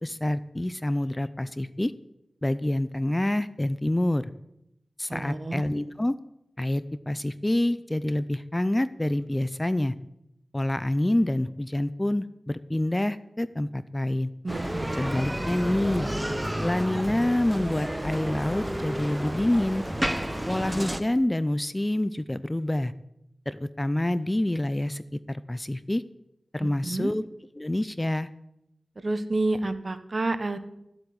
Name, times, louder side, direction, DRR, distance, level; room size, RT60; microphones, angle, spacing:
voice 1, 0.0-1.9 2.4-4.3 5.0-6.1 6.6-9.9 10.5-14.3 14.9-16.1 16.6-19.8 20.5-22.9 23.5-26.0 26.5-27.2 27.6-28.3, left 1 dB, 20° left, 15 dB, 0.5 m, -27 dB
voice 2, 5.1-5.6 14.4-15.1 26.6-27.1 29.0-30.6, right 2 dB, 45° right, 10 dB, 1.3 m, -29 dB
Bicycle, 14.5-21.0, right 1 dB, 10° right, 1.1 m, -31 dB
13.5 x 8.0 x 8.7 m, 0.84 s
wide cardioid pair, 70°, 0 cm